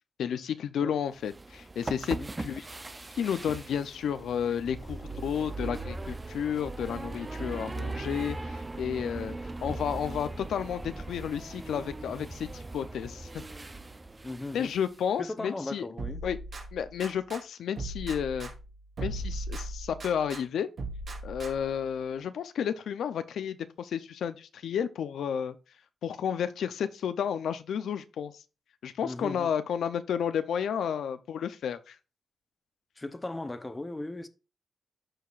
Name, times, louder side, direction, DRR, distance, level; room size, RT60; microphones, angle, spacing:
voice 1, 0.2-2.7 3.2-13.4 14.5-15.9 16.2-16.4 16.7-18.5 19.0-20.7 21.2-25.6 26.0-28.3 28.8-32.0, left 8 dB, 90° left, 0.6 m, -32 dB
sound 1, 1.2-15.0, right 2 dB, 20° right, 0.6 m, -39 dB
voice 2, 14.2-14.7 15.2-16.2 29.0-29.5 33.0-34.3, left 2 dB, 15° left, 0.8 m, -37 dB
sound 2, 16.0-17.4 17.8-20.4 20.8-21.8, right 2 dB, 55° right, 2.7 m, -38 dB
13.5 x 4.8 x 2.5 m
wide cardioid pair, 115°, 0 cm